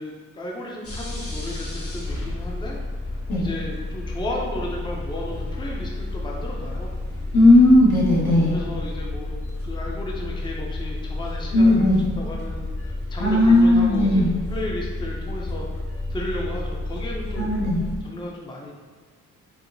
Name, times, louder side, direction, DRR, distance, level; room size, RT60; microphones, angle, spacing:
voice 1, 0.0-2.8 3.4-7.0 8.5-9.3 9.6-11.7 12.2-14.2 14.5-15.7 16.1-17.5 18.0-18.7, left 1 dB, 15° left, -2 dB, 0.5 m, -34 dB
sound 1, 0.8-18.0, left 2 dB, 40° left, 0.9 m, -31 dB
voice 2, 7.3-8.5 11.5-12.0 13.2-14.3 17.4-17.8, left 1 dB, 75° left, -6 dB, 1.3 m, -16 dB
4.7 x 2.1 x 2.6 m, 1.5 s
cardioid pair, 65°, 37 cm